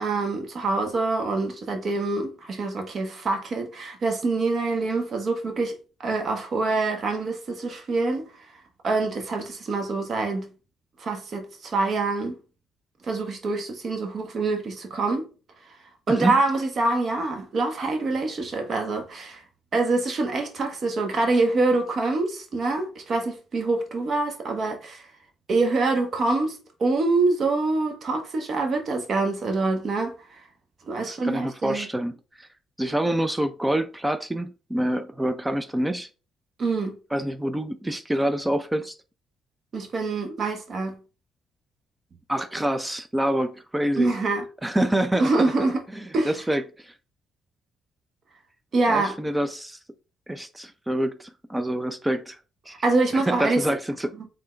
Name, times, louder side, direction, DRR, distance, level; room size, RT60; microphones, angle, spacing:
voice 1, 0.0-5.8 6.0-8.3 8.8-10.5 11.0-12.4 13.1-15.3 16.1-19.4 19.7-25.0 25.5-30.1 30.9-31.9 36.6-37.0 39.7-41.0 44.0-44.4 45.2-45.8 46.1-46.3 48.7-49.2 52.8-53.6 54.1-54.3, right 3 dB, 50° right, 1.3 m, -25 dB
voice 2, 16.1-16.4 31.1-32.5 32.8-36.1 37.1-38.9 42.3-44.1 44.6-45.5 45.9-46.9 48.9-49.8 50.3-52.4 52.7-52.8 53.1-54.1, right 1 dB, 10° right, 0.5 m, -26 dB
3.8 x 3.7 x 3.2 m
cardioid pair, 75°, 0 cm